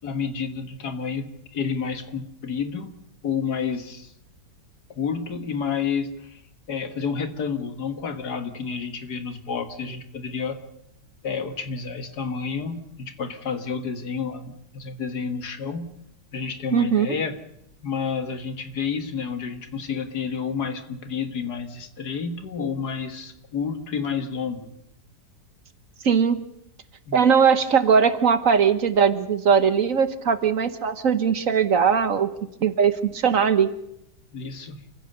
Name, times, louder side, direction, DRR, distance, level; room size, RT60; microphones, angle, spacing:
voice 1, 0.0-2.9 3.2-4.1 4.9-6.4 6.7-10.6 11.2-15.9 16.3-17.4 17.8-24.7 27.1-27.2 34.3-34.8, left 6 dB, 70° left, 8 dB, 2.2 m, -30 dB
voice 2, 16.7-17.2 26.0-26.4 27.1-32.3 32.6-33.7, right 6 dB, 55° right, 11 dB, 1.4 m, -20 dB
28.0 x 15.5 x 6.8 m, 0.80 s
omnidirectional pair, 1.8 m